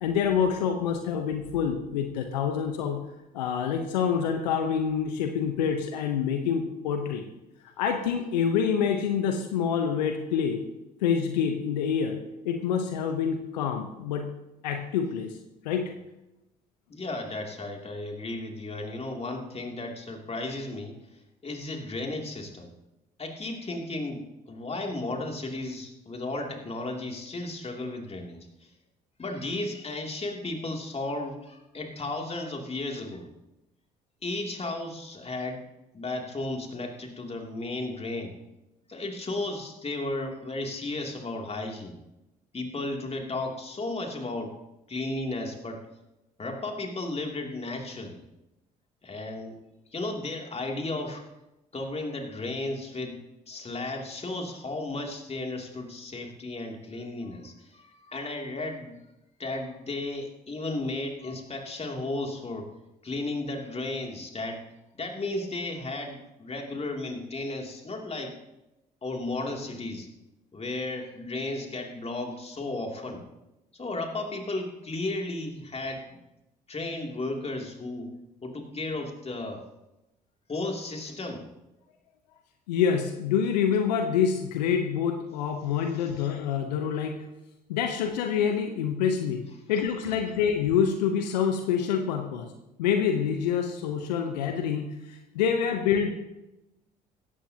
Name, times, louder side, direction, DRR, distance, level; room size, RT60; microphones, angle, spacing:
voice 1, 0.0-3.0 3.3-7.2 7.8-10.6 11.0-12.2 12.4-14.3 14.6-15.3 15.6-15.8 82.7-87.1 87.7-89.4 89.7-92.5 92.8-96.1, left 7 dB, 80° left, 5 dB, 1.0 m, -26 dB
voice 2, 16.9-22.7 23.2-28.7 29.2-33.3 34.2-35.6 35.9-38.4 38.9-42.0 42.5-44.6 44.9-45.8 46.4-48.2 49.0-49.5 49.9-51.2 51.7-59.0 59.4-62.7 63.0-64.6 64.9-68.4 69.0-70.1 70.5-73.2 73.7-76.2 76.7-78.1 78.4-79.6 80.5-81.4, left 2 dB, 30° left, 2 dB, 2.9 m, -34 dB
17.0 x 14.0 x 2.9 m, 0.94 s
hypercardioid pair, 55°, 21 cm